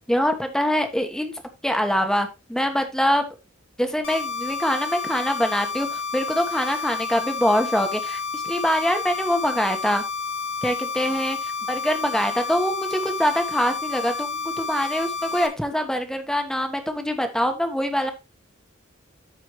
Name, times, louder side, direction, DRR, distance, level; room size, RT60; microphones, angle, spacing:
voice 1, 0.1-1.3 1.6-3.2 3.8-10.0 10.6-18.1, equal, 5° left, 6 dB, 1.2 m, -24 dB
sound 1, 4.0-15.5, left 4 dB, 70° left, 2.2 m, -30 dB
13.0 x 4.9 x 3.1 m, 0.25 s
head